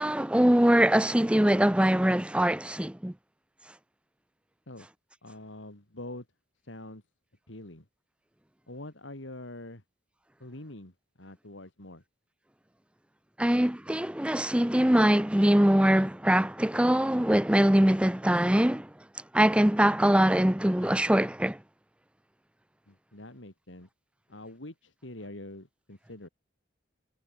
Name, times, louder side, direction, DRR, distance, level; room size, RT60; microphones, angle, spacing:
voice 1, 0.0-3.1 13.4-18.9 19.3-21.6, right 1 dB, 5° right, 0.6 m, -23 dB
voice 2, 5.2-6.3 6.6-7.0 7.5-7.9 8.7-9.8 10.4-12.0 22.9-23.9 24.3-26.3, left 1 dB, 80° left, 3.5 m, -44 dB
head